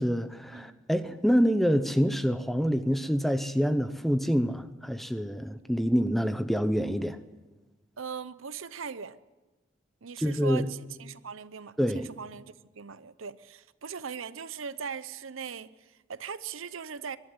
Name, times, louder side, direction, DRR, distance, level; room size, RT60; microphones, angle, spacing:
voice 1, 0.0-7.2 10.2-10.7 11.8-12.1, equal, ahead, 0.7 m, -26 dB
voice 2, 8.0-9.2 10.0-17.2, right 6 dB, 85° right, 0.7 m, -40 dB
24.0 x 12.0 x 9.7 m
head